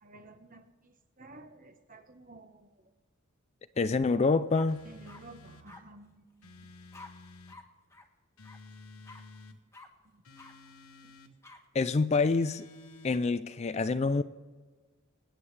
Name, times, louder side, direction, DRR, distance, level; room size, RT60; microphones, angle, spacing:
voice 1, 0.0-2.9 4.8-6.7 8.9-9.3 10.0-10.2 11.0-11.1, right 2 dB, 40° right, 7 dB, 1.1 m, -53 dB
voice 2, 3.8-4.8 11.7-12.7 13.0-14.2, left 4 dB, 30° left, 13 dB, 0.3 m, -26 dB
sound 1, 4.0-4.2 4.5-5.2 5.7-5.8 6.9-7.1 7.5-7.6 7.9-8.0 8.4-8.6 9.0-9.2 9.7-9.9 10.4-10.5 11.4-11.6, left 2 dB, 15° left, 1.3 m, -50 dB
sound 2, 4.7-5.7 6.4-7.6 8.4-9.6 10.2-11.3 12.1-13.2, left 2 dB, 80° left, 1.2 m, -52 dB
25.0 x 9.0 x 3.3 m, 1.4 s
head